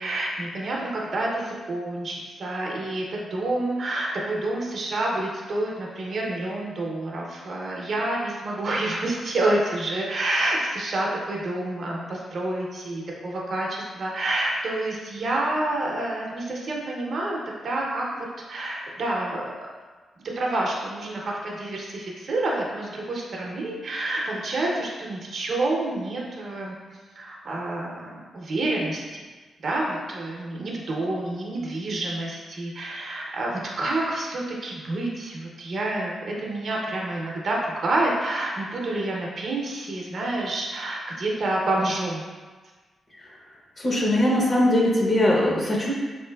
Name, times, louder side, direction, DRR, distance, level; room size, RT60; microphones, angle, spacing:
voice 1, 0.0-17.4 17.6-19.5 20.4-29.2 29.6-42.2, right 2 dB, 55° right, -2 dB, 0.6 m, -28 dB
voice 2, 43.8-45.9, left 1 dB, 25° left, -3 dB, 0.6 m, -21 dB
4.0 x 3.0 x 2.2 m, 1.4 s
wide cardioid pair, 135°, 0 cm